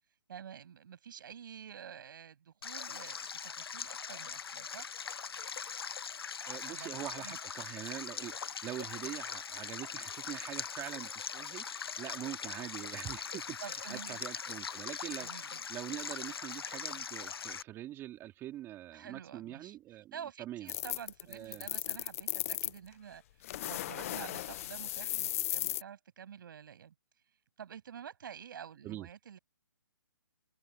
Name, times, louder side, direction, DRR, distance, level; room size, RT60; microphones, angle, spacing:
voice 1, 0.3-4.9 6.7-7.4 13.6-14.2 14.6-14.9 15.2-15.6 18.9-26.9 27.6-29.4, right 8 dB, 55° right, 7.7 m, -49 dB
Stream, 2.6-17.6, left 6 dB, 70° left, 1.5 m, -41 dB
voice 2, 6.5-20.1 20.4-20.7 21.3-21.7 28.8-29.1, right 13 dB, 15° right, 3.4 m, -44 dB
sound 1, 20.7-22.8 23.4-25.8, left 14 dB, 35° left, 0.8 m, -36 dB
hypercardioid pair, 150°, 13 cm